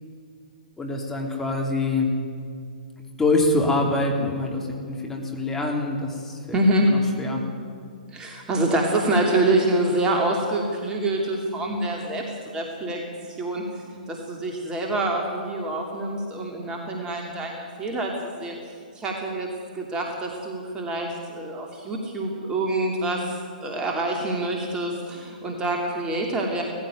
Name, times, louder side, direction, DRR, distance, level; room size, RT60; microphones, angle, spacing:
voice 1, 0.8-2.1 3.2-6.4 6.9-7.4, left 2 dB, 10° left, 0 dB, 3.6 m, -25 dB
voice 2, 6.5-6.9 8.1-12.2 12.5-13.0 13.3-18.1 18.4-18.6 18.9-23.3 23.6-26.6, right 1 dB, 15° right, 1 dB, 2.7 m, -26 dB
18.5 x 15.0 x 9.3 m, 2.3 s
figure-of-eight pair, 120°, 4 cm